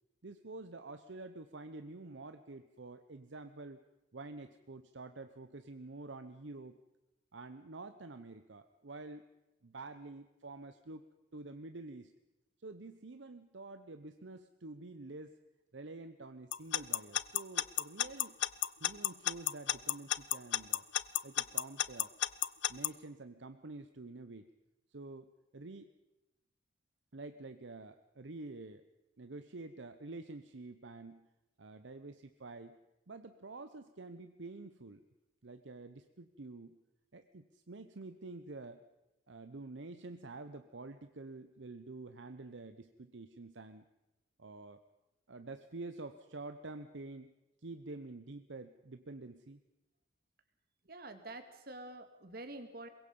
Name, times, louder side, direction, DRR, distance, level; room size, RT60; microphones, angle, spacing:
voice 1, 0.2-3.8 4.1-6.8 7.3-9.2 9.6-12.1 12.6-15.4 15.7-18.4 18.8-20.8 21.2-22.1 22.7-24.5 24.9-25.9 27.1-28.8 29.2-31.3 31.6-32.8 33.1-35.0 35.4-36.8 37.1-38.9 39.3-43.8 44.4-44.8 45.3-47.3 47.6-49.6, right 3 dB, 75° right, 9 dB, 0.9 m, -48 dB
Alarm / Clock, 16.5-22.9, left 12 dB, 80° left, 0.7 m, -31 dB
voice 2, 50.9-52.9, right 2 dB, 55° right, 8 dB, 2.2 m, -47 dB
23.5 x 21.5 x 5.4 m, 0.99 s
head